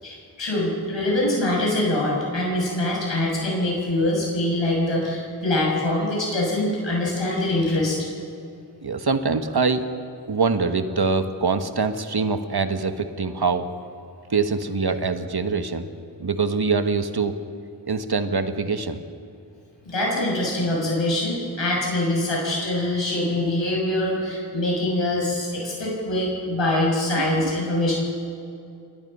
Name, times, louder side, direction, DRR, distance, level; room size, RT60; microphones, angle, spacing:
voice 1, 0.0-8.1 19.8-27.9, left 1 dB, 85° left, -3 dB, 6.7 m, -24 dB
voice 2, 8.8-9.9 10.3-13.7 14.3-15.9 16.2-17.4 17.9-19.0 27.2-27.5, right 4 dB, 60° right, 8 dB, 1.5 m, -24 dB
28.5 x 23.0 x 5.6 m, 2.5 s
wide cardioid pair, 90°, 44 cm